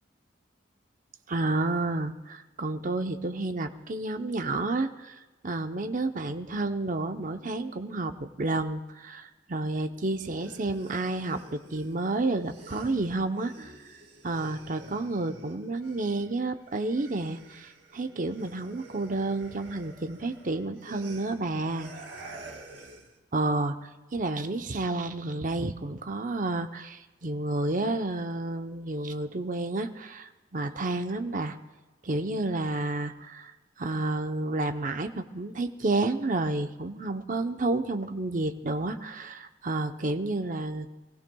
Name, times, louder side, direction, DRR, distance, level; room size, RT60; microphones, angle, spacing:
voice 1, 1.3-14.0 14.2-21.9 23.3-31.6 32.0-33.5 33.8-40.9, right 2 dB, 45° right, 7 dB, 0.8 m, -30 dB
sound 1, 10.2-16.4 16.7-23.2, right 2 dB, 65° right, 2.6 m, -49 dB
24.5 x 16.5 x 2.3 m, 1.2 s
head